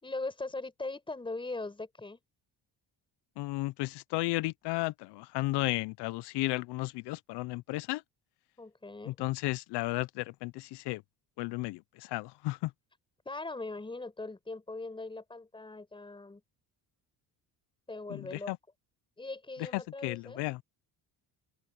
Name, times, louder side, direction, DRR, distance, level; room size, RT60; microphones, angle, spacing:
voice 1, 0.0-2.2 8.6-9.3 13.2-16.4 17.9-18.5 19.2-20.4, left 2 dB, 10° left, 4.9 m, -40 dB
voice 2, 3.4-8.0 9.1-11.0 11.4-12.7 18.1-18.6 19.7-20.6, left 20 dB, 80° left, 0.5 m, -34 dB
open air
cardioid pair, 150°, 41 cm